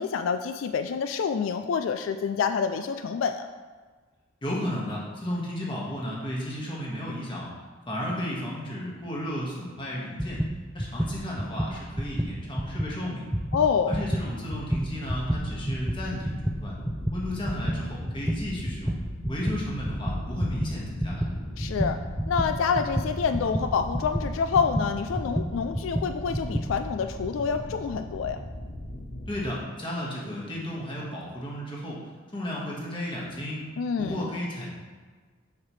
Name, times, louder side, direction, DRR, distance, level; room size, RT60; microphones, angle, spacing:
voice 1, 0.0-3.5 13.5-14.0 21.6-22.0 22.3-28.4 33.8-34.2, left 6 dB, 85° left, 8 dB, 0.3 m, -27 dB
voice 2, 4.4-7.5 7.9-10.4 10.7-13.2 13.9-16.7 17.1-18.9 19.3-21.3 29.3-32.0 32.3-33.6 34.0-34.7, left 1 dB, 25° left, -5 dB, 1.6 m, -33 dB
sound 1, 10.2-12.9 13.3-26.8, equal, 5° right, 0.3 m, -30 dB
sound 2, 15.2-29.5, left 1 dB, 60° left, 0.9 m, -39 dB
7.4 x 5.8 x 3.2 m, 1.4 s
head